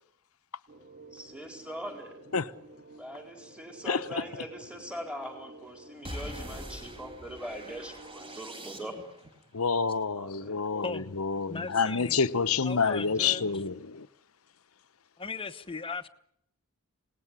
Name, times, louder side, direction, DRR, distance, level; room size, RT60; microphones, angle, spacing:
sound 1, 0.7-8.4, right 2 dB, 45° right, 3.0 m, -52 dB
voice 1, 1.1-2.2 3.0-8.9 10.1-10.5 13.2-13.3, equal, 5° right, 4.4 m, -41 dB
sound 2, 6.0-9.3, equal, 25° right, 4.6 m, -43 dB
voice 2, 9.5-14.1, left 5 dB, 75° left, 1.0 m, -28 dB
voice 3, 11.5-12.3 12.6-13.5 15.2-16.1, left 4 dB, 25° left, 1.1 m, -37 dB
27.5 x 19.0 x 9.8 m
head